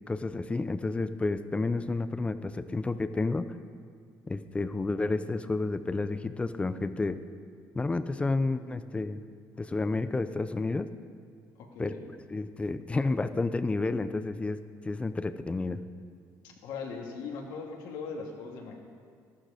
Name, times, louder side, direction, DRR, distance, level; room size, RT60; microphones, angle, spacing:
voice 1, 0.1-3.5 4.3-7.2 7.7-9.2 9.6-10.9 11.8-11.9 12.3-14.6 14.8-15.8, left 3 dB, 15° left, 12 dB, 0.6 m, -30 dB
voice 2, 11.6-12.1 16.4-18.8, left 5 dB, 85° left, 0 dB, 2.1 m, -40 dB
13.0 x 12.5 x 5.1 m, 2.1 s
cardioid pair, 110°, 7 cm